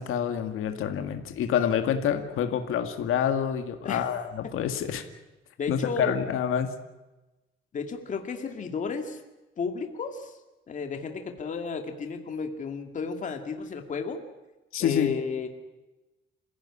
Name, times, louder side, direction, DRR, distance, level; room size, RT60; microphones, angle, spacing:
voice 1, 0.0-5.0 5.7-6.7 14.7-15.2, left 8 dB, 85° left, 7 dB, 2.1 m, -27 dB
voice 2, 5.6-6.2 7.7-9.2 9.6-10.3 10.7-14.2 14.8-15.5, left 5 dB, 35° left, 5 dB, 2.2 m, -33 dB
27.0 x 16.5 x 9.9 m, 1.1 s
cardioid pair, 180°, 21 cm